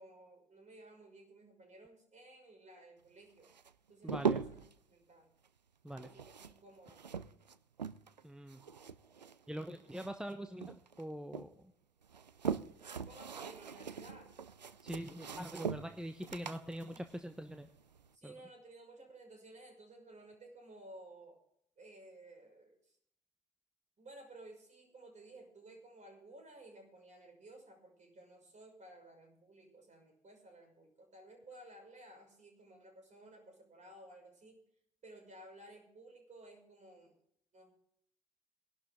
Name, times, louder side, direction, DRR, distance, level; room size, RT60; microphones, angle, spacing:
voice 1, 0.0-3.5 3.9-5.3 6.0-7.0 13.0-14.4 16.6-17.0 18.1-21.4 21.8-23.0 24.0-34.6 35.0-37.2 37.5-37.8, right 2 dB, 35° right, 2 dB, 5.8 m, -56 dB
sound 1, 3.4-4.8 5.9-8.2 8.5-10.3 10.6-11.5 12.0-18.1, right 6 dB, 90° right, 0.5 m, -41 dB
voice 2, 4.0-4.4 5.8-6.1 8.2-8.6 9.5-11.7 14.8-17.7 18.2-18.3, equal, 5° right, 7 dB, 1.0 m, -43 dB
21.0 x 11.5 x 3.6 m, 0.70 s
figure-of-eight pair, 50°, 21 cm